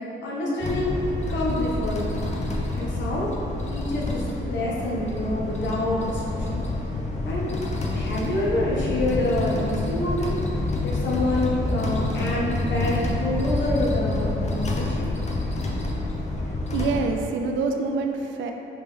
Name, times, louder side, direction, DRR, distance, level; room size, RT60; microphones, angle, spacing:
voice 1, 0.2-1.0 1.3-2.3 2.7-3.3 3.7-6.6 7.2-7.5 7.9-10.4 10.8-15.1, left 1 dB, 65° left, -5 dB, 0.9 m, -27 dB
sound 1, 0.6-17.1, left 2 dB, 35° left, 0.6 m, -28 dB
voice 2, 16.5-18.5, right 4 dB, 70° right, 4 dB, 0.4 m, -26 dB
3.4 x 2.9 x 3.5 m, 3.0 s
cardioid pair, 90°, 20 cm